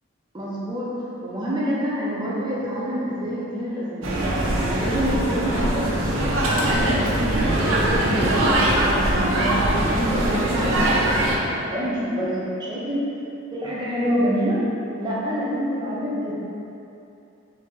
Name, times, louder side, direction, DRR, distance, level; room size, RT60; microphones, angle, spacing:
voice 1, 0.3-0.9 1.2-4.1 4.7-13.1 13.5-14.6 15.0-16.3, equal, 20° right, -7 dB, 0.6 m, -27 dB
sound 1, 4.0-11.4, right 1 dB, 70° right, 0.5 m, -21 dB
3.0 x 2.9 x 3.6 m, 2.8 s
head